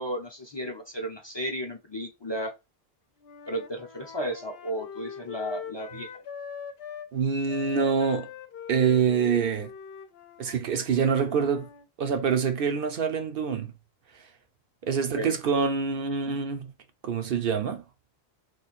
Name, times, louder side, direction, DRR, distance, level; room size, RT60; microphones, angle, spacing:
voice 1, 0.0-2.5 3.5-6.1 15.2-15.3, equal, 30° left, 0.6 m, -33 dB
Wind instrument woodwind instrument, 3.2-7.1 7.5-11.8, left 7 dB, 75° left, 0.8 m, -42 dB
voice 2, 7.1-8.3 8.7-9.7 10.4-11.7 12.0-13.7 14.8-16.7 17.0-17.8, right 6 dB, 65° right, 0.8 m, -25 dB
3.1 x 2.3 x 4.0 m
omnidirectional pair, 1.0 m